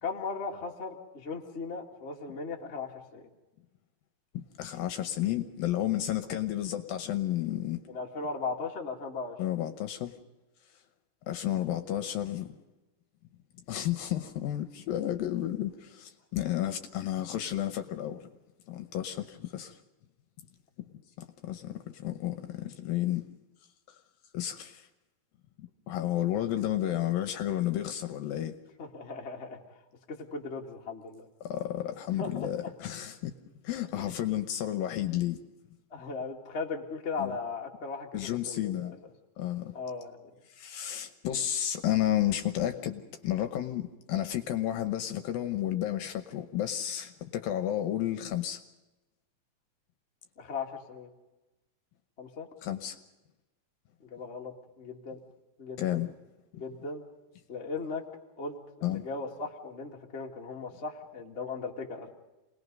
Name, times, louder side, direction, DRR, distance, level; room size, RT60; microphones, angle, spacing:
voice 1, 0.0-3.3 7.9-9.4 28.8-29.6 30.1-31.3 32.2-32.7 33.9-34.1 35.9-38.9 39.7-40.3 50.4-51.1 52.2-52.5 54.0-55.2 55.6-56.0 56.5-57.1 57.5-58.0 58.4-62.1, left 4 dB, 30° left, 1.3 m, -38 dB
voice 2, 4.3-7.8 9.4-10.1 11.3-12.6 13.7-18.3 18.7-19.8 21.2-23.3 24.3-24.9 25.6-28.5 31.4-33.3 33.6-35.4 37.2-37.4 38.1-39.0 39.4-39.7 40.6-48.6 52.6-53.0 55.8-56.1 58.8-59.0, left 12 dB, 75° left, 2.4 m, -32 dB
28.5 x 20.0 x 5.4 m
omnidirectional pair, 4.6 m